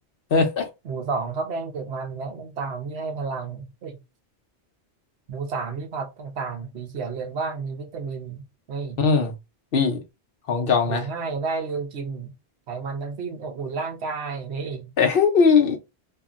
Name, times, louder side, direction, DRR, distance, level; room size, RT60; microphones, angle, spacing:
voice 1, 0.3-0.7 9.0-9.3 9.7-10.0 10.5-11.1 15.0-15.8, left 5 dB, 60° left, 0.9 m, -19 dB
voice 2, 0.8-4.0 5.3-9.0 10.9-12.3 12.7-14.9, right 4 dB, 75° right, 1.0 m, -31 dB
2.8 x 2.5 x 2.4 m
omnidirectional pair, 1.1 m